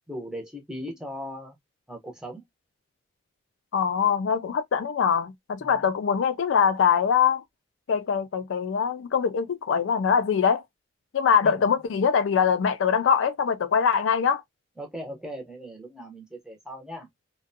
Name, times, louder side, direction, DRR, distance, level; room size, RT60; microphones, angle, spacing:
voice 1, 0.1-1.6 1.9-2.4 5.6-5.9 11.4-11.7 14.8-17.1, equal, 5° right, 0.6 m, -38 dB
voice 2, 3.7-7.4 7.9-10.6 11.1-14.4, left 7 dB, 75° left, 0.4 m, -23 dB
2.5 x 2.2 x 2.6 m
head